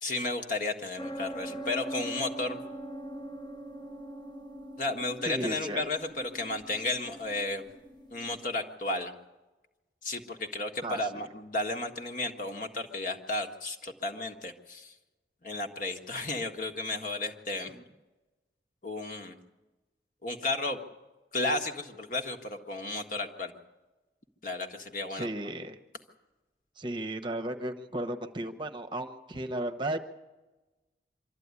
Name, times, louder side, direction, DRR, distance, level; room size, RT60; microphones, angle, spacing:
voice 1, 0.0-2.6 4.8-7.7 8.1-9.1 10.0-14.9 15.4-17.7 18.8-19.3 20.2-20.8 21.3-23.5 24.4-25.3, left 2 dB, 50° left, 4 dB, 1.6 m, -33 dB
sound 1, 1.0-8.4, right 1 dB, 25° left, 0.9 m, -42 dB
voice 2, 5.2-5.9 10.8-11.1 17.7-17.8 25.1-25.8 26.8-30.0, right 1 dB, 25° right, 6 dB, 1.0 m, -34 dB
24.5 x 13.0 x 9.7 m, 1.1 s
head